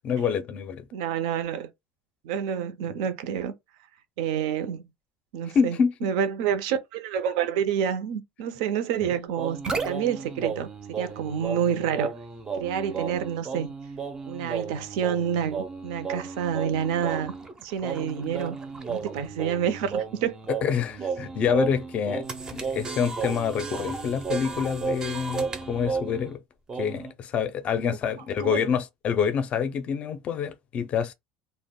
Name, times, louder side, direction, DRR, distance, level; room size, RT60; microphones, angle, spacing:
voice 1, 0.0-0.9 5.5-6.1 20.6-22.3 22.5-26.4 26.8-31.1, left 7 dB, 35° left, 0.4 m, -27 dB
voice 2, 0.9-1.7 2.2-3.5 4.2-4.8 5.3-12.1 12.5-13.7 14.3-17.3 17.6-18.6 18.9-20.3 28.4-28.7, right 8 dB, 85° right, 0.5 m, -28 dB
sound 1, 9.4-26.3 26.7-27.1, right 5 dB, 20° right, 0.4 m, -33 dB
2.1 x 2.0 x 3.5 m
cardioid pair, 140°, 4 cm